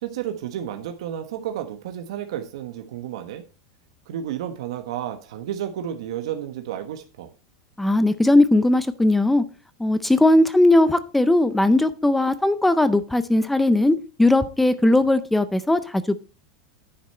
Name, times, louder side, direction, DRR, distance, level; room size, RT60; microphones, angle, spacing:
voice 1, 0.0-3.4 4.1-7.3, right 10 dB, 80° right, 1.3 m, -31 dB
voice 2, 7.8-9.4 9.8-16.2, left 1 dB, 5° left, 0.5 m, -18 dB
9.9 x 7.1 x 4.3 m
supercardioid pair, 160°, 3 cm